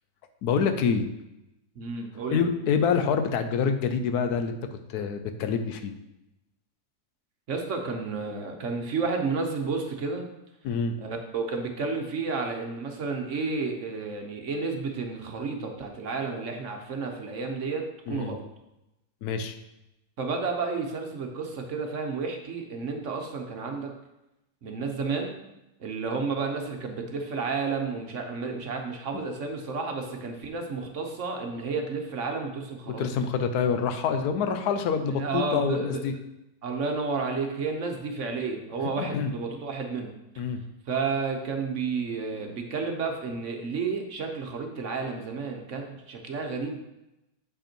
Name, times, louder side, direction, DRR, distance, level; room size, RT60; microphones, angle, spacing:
voice 1, 0.4-1.1 2.3-5.9 10.6-10.9 18.1-18.4 19.2-19.6 29.1-29.2 32.9-36.1 38.8-39.3 40.4-40.6, left 6 dB, 80° left, 8 dB, 1.2 m, -27 dB
voice 2, 1.8-2.4 7.5-10.3 11.0-18.4 20.2-23.9 24.6-25.4 25.8-33.1 35.1-36.0 36.6-40.1 40.9-46.8, right 4 dB, 55° right, 3 dB, 1.1 m, -31 dB
7.2 x 5.3 x 4.4 m, 0.92 s
omnidirectional pair, 1.7 m